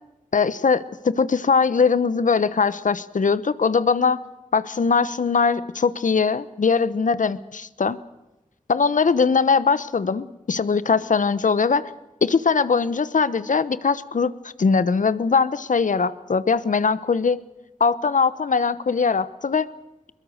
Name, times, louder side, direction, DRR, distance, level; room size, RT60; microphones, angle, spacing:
voice 1, 0.3-4.2 4.5-8.0 8.7-11.9 12.2-14.3 14.6-17.4 17.8-19.7, left 5 dB, 70° left, 16 dB, 1.0 m, -21 dB
22.0 x 22.0 x 6.5 m, 0.98 s
wide cardioid pair, 55°, 14 cm